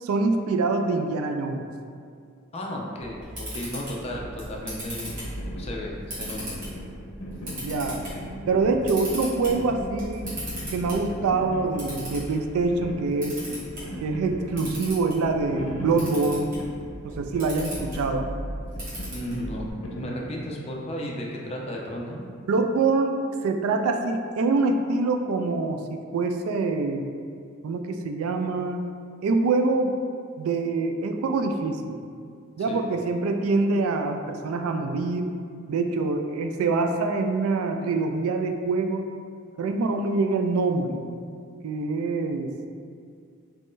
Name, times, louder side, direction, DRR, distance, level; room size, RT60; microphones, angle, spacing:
voice 1, 0.0-1.6 7.6-8.0 8.5-10.3 10.7-13.4 14.0-16.5 17.0-18.3 22.5-27.1 27.6-28.8 29.2-29.9 30.4-32.0 32.6-35.3 35.7-39.1 39.6-41.1 41.6-42.5, right 3 dB, 90° right, 5 dB, 0.3 m, -25 dB
voice 2, 2.5-5.2 5.6-6.6 19.1-22.2 32.6-32.8, equal, 30° left, -2 dB, 0.4 m, -34 dB
Camera, 3.0-19.7, equal, 40° right, 1.4 m, -38 dB
sound 1, 5.0-20.7, equal, 85° left, 0.6 m, -39 dB
3.1 x 2.6 x 3.6 m, 2.2 s
head